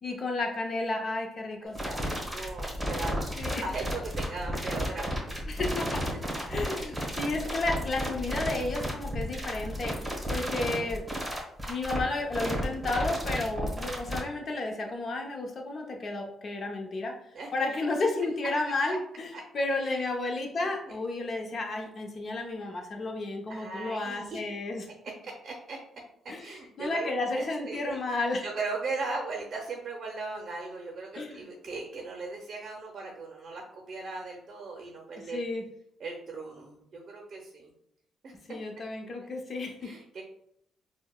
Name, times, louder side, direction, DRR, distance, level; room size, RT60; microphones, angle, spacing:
voice 1, 0.0-2.2 3.4-3.6 5.5-6.0 6.5-9.9 10.3-11.0 11.7-17.1 17.5-24.9 26.3-26.4 26.8-28.4 31.1-31.4 35.3-35.6 38.5-39.9, left 2 dB, 45° left, 2 dB, 0.7 m, -32 dB
voice 2, 1.6-5.1 17.3-17.5 18.2-18.3 19.3-19.4 19.8-20.0 20.9-21.0 23.5-24.4 25.0-25.8 26.2-35.5 36.0-37.7 38.2-38.6 39.8-40.2, right 3 dB, 50° right, 1 dB, 0.6 m, -38 dB
sound 1, 1.7-14.2, equal, 10° right, 1.1 m, -33 dB
4.5 x 2.1 x 2.3 m, 0.73 s
cardioid pair, 90°, 0 cm